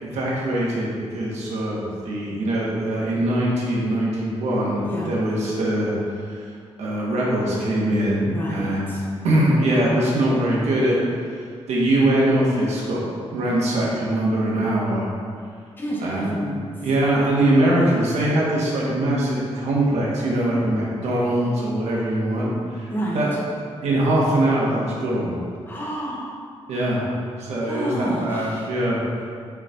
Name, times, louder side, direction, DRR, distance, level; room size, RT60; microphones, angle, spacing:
voice 1, 0.0-6.0 6.3-6.4 6.8-8.9 9.2-11.0 11.7-13.0 13.3-15.1 16.0-16.4 16.8-22.9 23.1-23.3 23.8-25.4 26.7-27.1 27.4-29.0, right 1 dB, 85° right, -5 dB, 1.6 m, -22 dB
voice 2, 8.3-9.1 15.8-16.9 22.9-23.2 25.6-26.5 27.6-28.7, right 1 dB, 20° left, -5 dB, 1.8 m, -30 dB
6.2 x 5.0 x 4.5 m, 2.1 s
cardioid pair, 105°, 11 cm